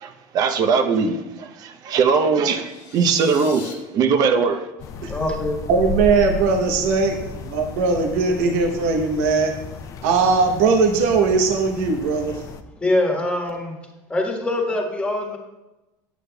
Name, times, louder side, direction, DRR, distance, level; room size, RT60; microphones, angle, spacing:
voice 1, 0.0-4.6, right 5 dB, 50° right, 7 dB, 0.7 m, -20 dB
sound 1, 2.5-3.7, left 6 dB, 90° left, 1.3 m, -41 dB
sound 2, 4.8-12.6, left 3 dB, 40° left, 0.5 m, -34 dB
voice 2, 5.0-5.6 12.8-13.8 14.1-15.4, left 1 dB, 15° left, 0 dB, 1.5 m, -23 dB
voice 3, 5.7-9.5 10.0-12.4, right 4 dB, 85° right, 3 dB, 0.9 m, -19 dB
9.2 x 8.2 x 2.3 m, 1.0 s
cardioid pair, 130°, 8 cm